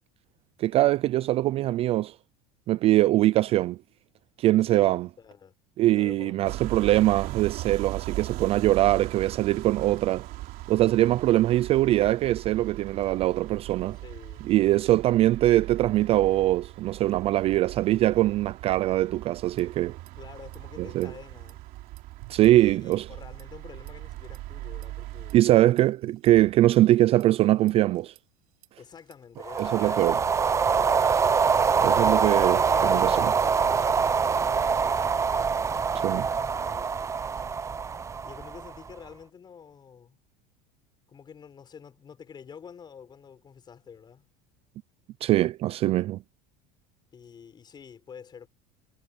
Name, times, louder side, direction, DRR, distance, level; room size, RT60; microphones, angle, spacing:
voice 1, 0.6-2.1 2.7-3.8 4.4-5.1 5.8-10.3 10.7-14.0 14.4-20.0 20.8-21.1 22.3-23.1 25.3-28.1 29.6-30.1 31.8-33.3 36.0-36.3 45.2-46.2, right 15 dB, 30° right, 0.3 m, -22 dB
voice 2, 4.6-5.5 5.9-6.6 11.3-11.6 14.0-14.5 20.2-21.7 22.5-25.4 28.8-30.9 31.9-37.2 38.2-40.2 41.1-44.3 47.1-48.5, left 7 dB, 25° left, 6.2 m, -48 dB
sound 1, 6.4-25.4, right 17 dB, 50° right, 3.3 m, -39 dB
sound 2, 19.3-20.1 20.4-20.6 20.9-23.6 23.9-24.4 24.8-28.2 28.6-34.6, right 24 dB, 80° right, 3.5 m, -51 dB
sound 3, 29.4-38.9, right 6 dB, 15° right, 0.7 m, -24 dB
cardioid pair, 150°, 19 cm